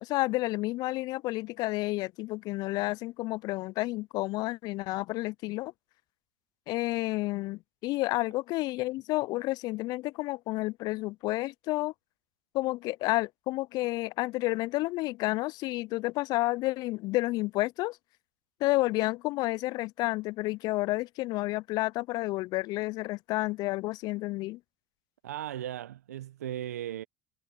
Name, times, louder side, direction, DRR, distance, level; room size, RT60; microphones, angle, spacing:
voice 1, 0.0-5.7 6.7-11.9 12.5-18.0 18.6-24.6, left 20 dB, 55° left, 0.3 m, -30 dB
voice 2, 25.2-27.0, right 11 dB, 85° right, 0.7 m, -37 dB
hypercardioid pair, 80°, 8 cm